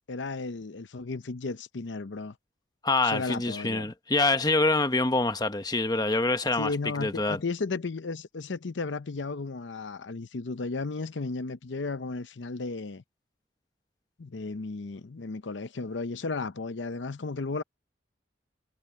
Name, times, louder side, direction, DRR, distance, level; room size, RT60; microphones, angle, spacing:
voice 1, 0.1-2.3 3.0-3.9 6.6-13.0 14.2-17.6, left 3 dB, 75° left, 0.7 m, -34 dB
voice 2, 2.8-7.4, left 2 dB, 20° left, 1.0 m, -26 dB
head